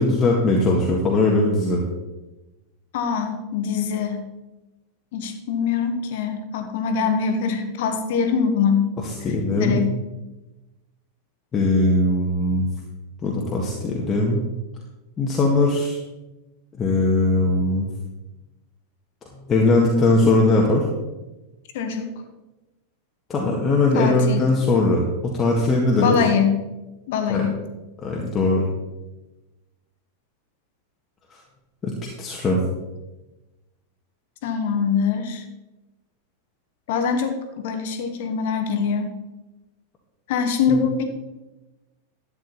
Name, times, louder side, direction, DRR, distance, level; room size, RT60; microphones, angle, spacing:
voice 1, 0.0-1.8 9.2-9.8 11.5-12.7 13.2-14.4 15.2-16.0 16.8-17.9 19.5-20.8 23.3-25.0 25.3-26.2 27.3-27.4 28.0-28.7 31.8-31.9 32.2-32.6, left 2 dB, 20° left, -2 dB, 1.8 m, -20 dB
voice 2, 2.9-4.2 5.1-8.9 9.2-9.8 21.7-22.2 23.9-24.5 26.0-26.6 27.1-27.6 34.4-35.4 36.9-39.2 40.3-41.0, left 6 dB, 50° left, 7 dB, 1.5 m, -23 dB
12.0 x 9.2 x 4.1 m, 1.1 s
figure-of-eight pair, 90°, 0 cm